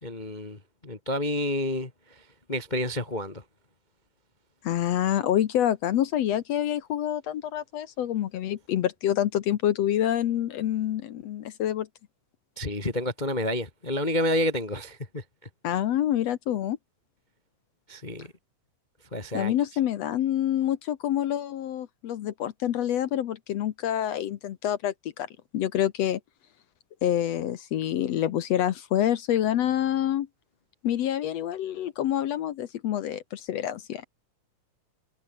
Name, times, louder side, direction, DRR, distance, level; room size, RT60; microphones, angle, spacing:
voice 1, 0.0-2.2 2.5-3.4 12.6-15.2 17.9-18.3 19.1-19.5, left 1 dB, 20° left, 1.3 m, -29 dB
voice 2, 4.6-11.9 15.6-16.8 19.3-25.3 25.5-26.2 27.0-30.3 30.8-34.1, left 11 dB, 65° left, 1.9 m, -27 dB
omnidirectional pair, 3.7 m